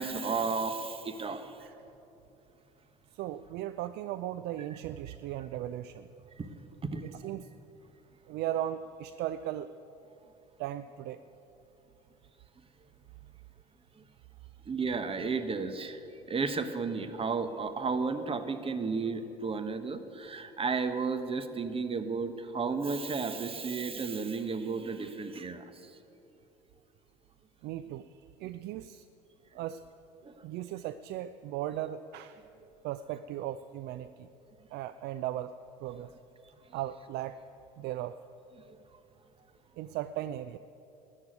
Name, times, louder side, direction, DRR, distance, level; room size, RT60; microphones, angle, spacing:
voice 1, 0.0-1.5 6.4-6.5 6.8-7.1 14.7-16.0 16.3-25.6 30.2-30.3, right 4 dB, 25° right, 10 dB, 1.2 m, -33 dB
voice 2, 3.1-6.1 7.0-7.5 8.3-9.7 10.6-11.2 27.6-28.1 28.4-29.1 29.5-29.8 30.4-32.4 32.8-34.3 34.7-36.1 36.7-37.4 37.8-38.2 39.8-40.6, right 12 dB, 55° right, 13 dB, 0.5 m, -37 dB
13.5 x 9.7 x 9.4 m, 3.0 s
hypercardioid pair, 65°, 20 cm